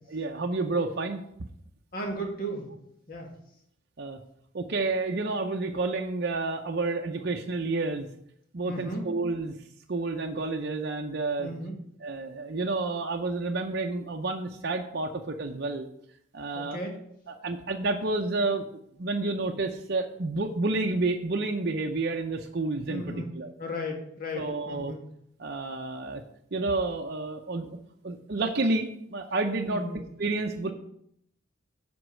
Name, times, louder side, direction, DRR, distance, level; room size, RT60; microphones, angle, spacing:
voice 1, 0.1-1.2 4.0-4.2 4.5-8.1 8.5-9.5 9.9-11.5 12.0-15.9 16.3-16.8 17.3-18.6 19.0-23.5 24.4-24.9 25.4-26.2 26.5-27.8 28.0-29.8 30.2-30.7, right 3 dB, 50° right, 2 dB, 0.6 m, -30 dB
voice 2, 1.9-2.7 3.1-3.3 8.6-9.1 11.4-11.8 16.5-17.0 22.9-23.3 23.6-25.0 29.7-30.0, equal, 45° left, 0 dB, 2.0 m, -35 dB
7.9 x 5.3 x 6.3 m, 0.72 s
head